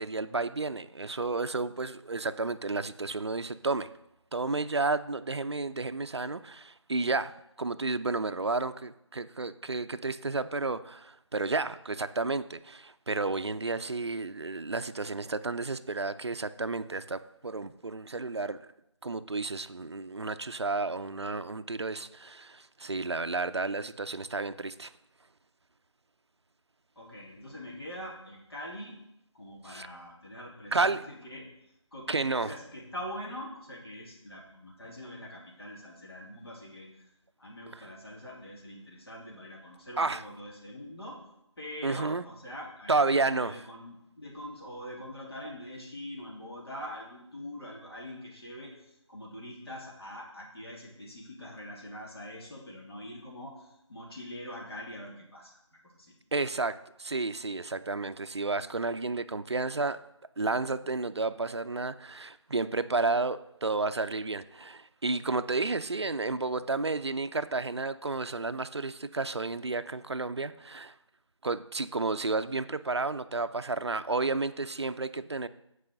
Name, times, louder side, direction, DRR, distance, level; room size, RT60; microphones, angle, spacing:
voice 1, 0.0-3.9 4.3-7.3 7.6-18.6 19.0-24.9 29.7-29.9 30.7-31.0 32.1-32.5 40.0-40.2 41.8-42.2 42.9-43.6 56.3-60.0 60.4-70.9 71.4-75.5, right 3 dB, 60° right, 11 dB, 0.5 m, -31 dB
voice 2, 26.9-29.0 29.3-31.5 31.9-37.1 37.4-41.2 41.6-56.1, left 1 dB, 55° left, -3 dB, 2.9 m, -44 dB
8.4 x 4.8 x 6.4 m, 0.81 s
figure-of-eight pair, 170°, 16 cm